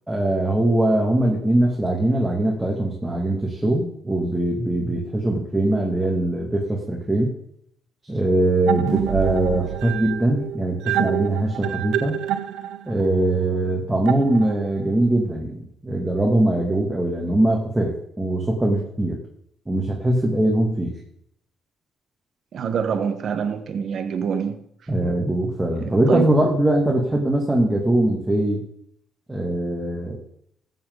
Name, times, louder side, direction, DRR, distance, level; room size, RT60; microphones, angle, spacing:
voice 1, 0.1-7.3 8.1-12.2 12.9-19.2 19.7-20.9 24.9-28.6 29.3-30.2, right 1 dB, 10° right, 2.3 m, -21 dB
sound 1, 8.7-14.8, right 11 dB, 90° right, 0.6 m, -27 dB
voice 2, 22.5-24.6 25.7-26.3, right 7 dB, 60° right, 1.3 m, -25 dB
15.0 x 7.5 x 4.0 m
cardioid pair, 90°, 0 cm